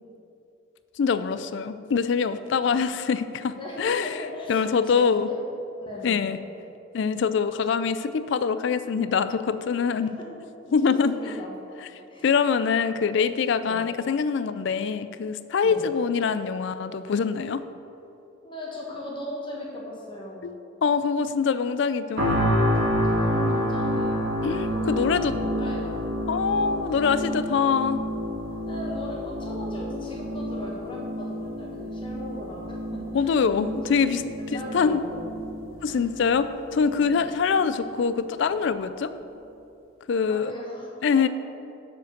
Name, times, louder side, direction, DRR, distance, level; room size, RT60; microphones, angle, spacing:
voice 1, 1.0-4.1 4.5-5.3 6.0-6.4 6.9-10.2 10.7-11.2 12.2-17.6 20.4-20.5 20.8-22.5 24.4-25.3 26.3-28.0 33.1-34.2 34.5-35.0 35.8-36.5 36.7-39.1 40.1-40.5 41.0-41.3, left 6 dB, 60° left, 13 dB, 0.3 m, -24 dB
voice 2, 3.6-5.4 5.8-6.3 10.2-10.3 10.6-11.5 12.1-12.3 13.7-13.8 15.6-15.8 18.4-20.5 23.0-26.0 26.6-27.4 28.6-33.3 33.9-35.2 35.8-36.0 37.5-37.6 40.3-40.9 41.1-41.3, left 1 dB, 25° left, -4 dB, 1.3 m, -38 dB
sound 1, 22.2-37.2 37.7-37.8, equal, 80° right, 1.8 m, -29 dB
6.8 x 5.2 x 6.5 m, 2.8 s
head